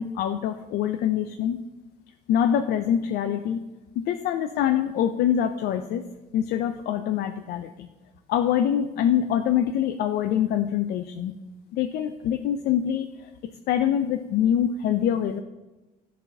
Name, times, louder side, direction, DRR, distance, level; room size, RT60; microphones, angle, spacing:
voice 1, 0.0-1.6 2.3-3.6 4.0-6.0 6.3-7.9 8.3-11.4 11.7-13.1 13.7-15.4, left 9 dB, 70° left, 8 dB, 0.4 m, -24 dB
11.0 x 4.0 x 2.7 m, 1.1 s
cardioid pair, 110°, 17 cm